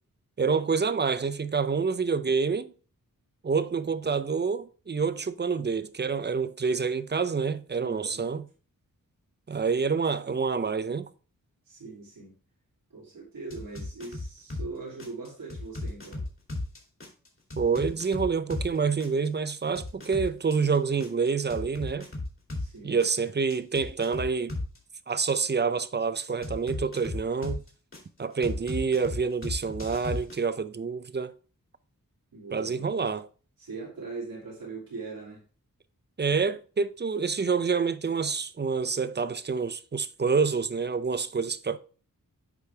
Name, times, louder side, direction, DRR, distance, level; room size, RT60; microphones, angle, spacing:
voice 1, 0.4-2.7 3.4-8.5 9.5-11.1 17.6-22.1 22.8-24.5 25.1-27.6 28.2-31.3 32.5-33.3 36.2-41.8, right 5 dB, 30° right, 0.6 m, -27 dB
voice 2, 7.7-8.3 11.7-12.4 12.9-16.2 17.8-18.2 22.6-23.0 32.3-32.9 33.6-35.4, right 3 dB, 85° right, 2.8 m, -41 dB
sound 1, 13.5-14.7 15.0-18.7 19.0-22.7 23.0-24.8 26.4-28.0 28.4-30.4, left 2 dB, 40° left, 2.6 m, -35 dB
8.3 x 5.2 x 3.3 m
wide cardioid pair, 75°, 34 cm